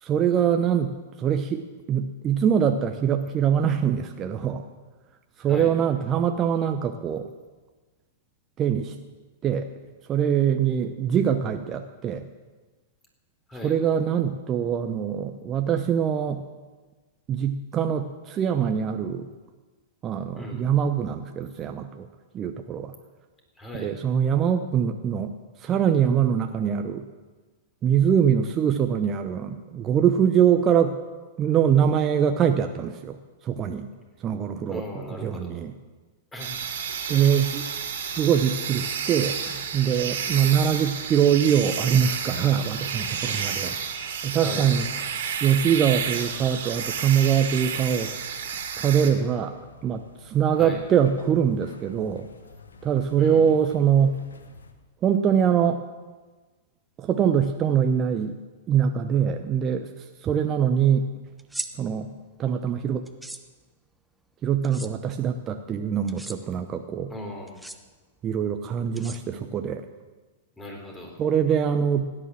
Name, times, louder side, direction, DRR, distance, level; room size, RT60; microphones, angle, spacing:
voice 1, 0.0-4.6 5.4-7.3 8.6-9.0 9.4-9.7 10.1-12.3 13.6-16.4 17.3-19.3 20.0-22.1 22.3-22.9 23.7-27.0 27.8-31.0 31.4-33.2 33.4-33.9 34.2-34.8 35.2-35.7 37.1-43.8 44.2-44.9 45.4-48.1 48.8-52.3 52.8-54.2 55.0-55.8 57.0-58.4 58.7-61.1 61.8-62.1 62.4-63.0 64.4-67.1 68.2-69.9 71.2-72.0, right 8 dB, 30° right, 6 dB, 0.9 m, -23 dB
voice 2, 20.4-20.7 23.6-23.9 34.7-35.5 36.3-36.6 36.9-37.0 44.4-44.7 50.6-50.8 53.2-53.4 67.1-67.6 70.6-71.2, left 1 dB, 15° left, 2 dB, 4.1 m, -37 dB
sound 1, 36.4-49.1, right 7 dB, 65° right, 2.4 m, -31 dB
sound 2, 36.5-54.7, left 4 dB, 80° left, 1.4 m, -47 dB
sound 3, 61.4-61.7 63.1-63.4 64.6-64.9 66.1-66.4 67.5-67.8 69.0-69.6, right 1 dB, 5° right, 0.9 m, -36 dB
16.0 x 10.0 x 7.6 m, 1.3 s
hypercardioid pair, 105°, 0 cm